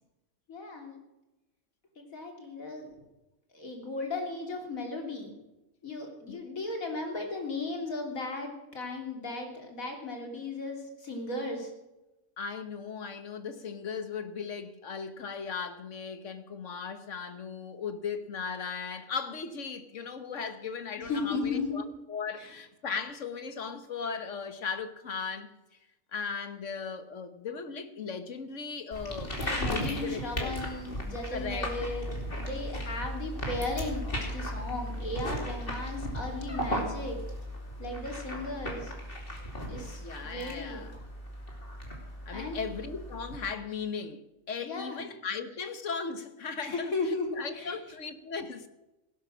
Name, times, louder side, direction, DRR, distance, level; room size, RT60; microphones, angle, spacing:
voice 1, 0.5-1.0 2.0-2.9 3.5-5.3 5.8-11.7 21.0-21.7 22.4-22.5 29.4-32.1 32.4-37.2 37.8-38.9 39.7-40.9 42.3-42.6 44.6-45.1 46.6-47.8, left 2 dB, 80° left, 3.4 m, -36 dB
voice 2, 12.4-25.5 26.1-30.6 31.3-31.7 40.0-41.0 42.3-46.9 47.4-48.7, left 5 dB, 60° left, 1.5 m, -37 dB
sound 1, 28.9-43.5, equal, 40° left, 3.1 m, -36 dB
17.5 x 11.0 x 6.2 m
omnidirectional pair, 1.4 m